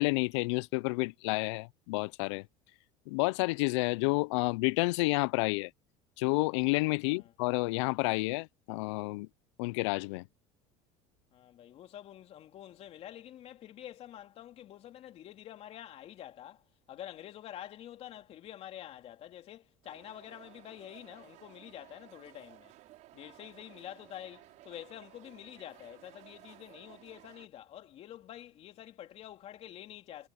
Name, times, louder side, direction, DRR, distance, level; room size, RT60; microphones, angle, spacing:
voice 1, 0.0-2.5 3.1-5.7 6.2-9.3 9.6-10.3, left 26 dB, 90° left, 0.4 m, -30 dB
voice 2, 11.3-22.7 23.1-30.3, left 12 dB, 45° left, 3.1 m, -48 dB
sound 1, 19.8-27.5, right 16 dB, 60° right, 5.1 m, -56 dB
cardioid pair, 130°, 14 cm